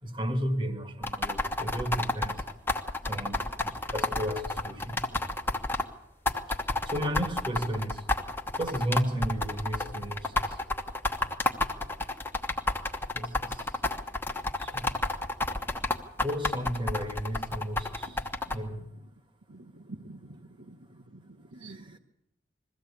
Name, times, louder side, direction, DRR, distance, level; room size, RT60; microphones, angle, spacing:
voice 1, 0.0-2.4 3.1-5.3 6.5-8.1 8.6-10.6 12.0-12.2 13.1-13.7 14.6-15.2 16.2-18.9 21.6-22.0, equal, 25° right, 1.7 m, -34 dB
sound 1, 1.0-5.8 6.3-18.6, left 2 dB, 10° left, 1.1 m, -30 dB
voice 2, 19.5-22.0, right 2 dB, 90° right, 1.3 m, -48 dB
21.5 x 15.0 x 8.4 m
head